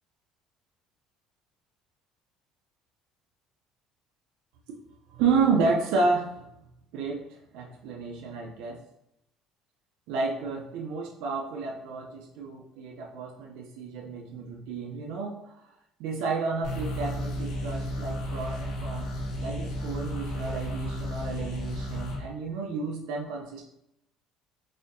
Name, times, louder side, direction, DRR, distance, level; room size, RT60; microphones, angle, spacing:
voice 1, 5.1-6.4 6.9-8.9 10.1-15.6 16.0-23.7, right 4 dB, 80° right, -1 dB, 0.5 m, -31 dB
sound 1, 16.6-22.2, equal, 65° left, 1.1 m, -33 dB
4.2 x 2.7 x 2.6 m, 0.81 s
cardioid pair, 155°, 0 cm